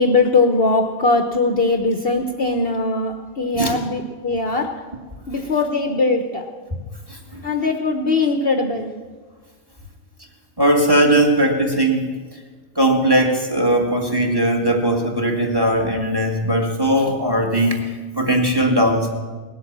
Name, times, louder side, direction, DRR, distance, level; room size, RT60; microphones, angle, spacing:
voice 1, 0.0-4.7 5.3-6.5 7.4-8.9, left 3 dB, 50° left, 4 dB, 1.0 m, -20 dB
voice 2, 7.1-7.4 10.6-12.1 12.8-19.1, right 1 dB, 15° right, 2 dB, 1.7 m, -19 dB
19.0 x 8.1 x 7.3 m, 1.4 s
omnidirectional pair, 1.5 m